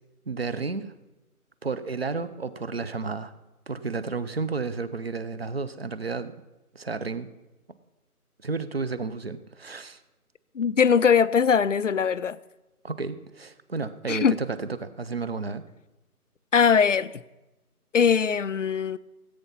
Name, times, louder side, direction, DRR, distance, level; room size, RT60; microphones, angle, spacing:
voice 1, 0.3-0.9 1.6-3.3 3.7-6.4 6.7-7.3 8.4-10.0 12.8-15.6, right 4 dB, 40° right, 0.7 m, -32 dB
voice 2, 10.6-12.4 14.1-14.4 16.5-17.1 17.9-19.0, left 6 dB, 55° left, 0.6 m, -21 dB
17.5 x 8.4 x 5.8 m
figure-of-eight pair, 165°, 45 cm